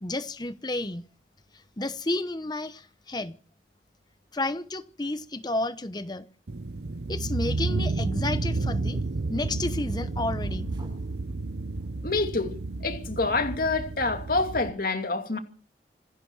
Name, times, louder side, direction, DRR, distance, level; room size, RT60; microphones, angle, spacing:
voice 1, 0.0-1.0 1.8-3.3 4.3-6.2 7.1-9.0 9.3-10.7, left 2 dB, 25° left, 0.9 m, -31 dB
sound 1, 6.5-14.7, right 3 dB, 65° right, 0.7 m, -31 dB
sound 2, 10.4-11.1 11.7-12.6, equal, 25° right, 7.5 m, -42 dB
voice 2, 12.0-12.5 12.8-15.4, left 3 dB, 50° left, 2.5 m, -27 dB
26.5 x 11.0 x 4.7 m
head